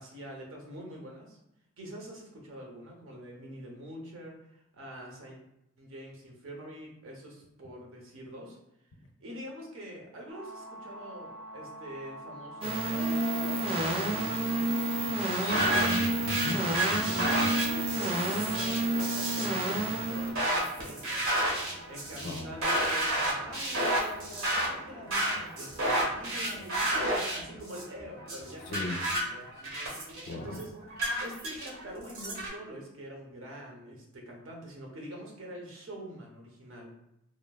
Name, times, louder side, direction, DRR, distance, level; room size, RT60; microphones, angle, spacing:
voice 1, 0.0-1.4 1.8-5.4 5.8-8.6 9.2-15.7 17.2-21.4 21.8-29.1 29.4-29.6 30.3-30.7 31.2-36.9, equal, 65° right, 0 dB, 0.7 m, -45 dB
sound 1, 10.3-15.7, right 1 dB, 5° right, 0.7 m, -45 dB
sound 2, 12.6-20.3, right 2 dB, 25° right, 0.3 m, -30 dB
voice 2, 15.4-17.5 22.2-22.5 28.6-29.0 30.3-30.6, left 2 dB, 60° left, 3 dB, 0.4 m, -37 dB
sound 3, 15.5-32.5, right 1 dB, 90° right, 1.0 m, -31 dB
3.0 x 2.1 x 2.2 m, 0.85 s
head